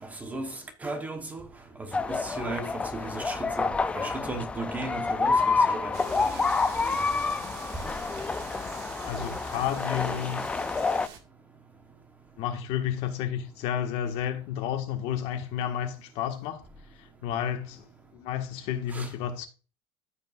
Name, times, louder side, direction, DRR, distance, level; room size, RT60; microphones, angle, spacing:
voice 1, 0.0-1.5 1.8-3.7 3.9-6.5 6.9-7.1 18.9-19.1, right 2 dB, 15° right, 1.0 m, -36 dB
sound 1, 1.9-11.1, left 4 dB, 10° left, 0.4 m, -28 dB
sound 2, 5.9-11.2, right 7 dB, 55° right, 1.8 m, -45 dB
voice 2, 9.0-10.4 12.4-16.6 17.0-17.9 18.1-19.5, left 9 dB, 55° left, 1.5 m, -31 dB
14.0 x 5.2 x 2.4 m
supercardioid pair, 150°, 12 cm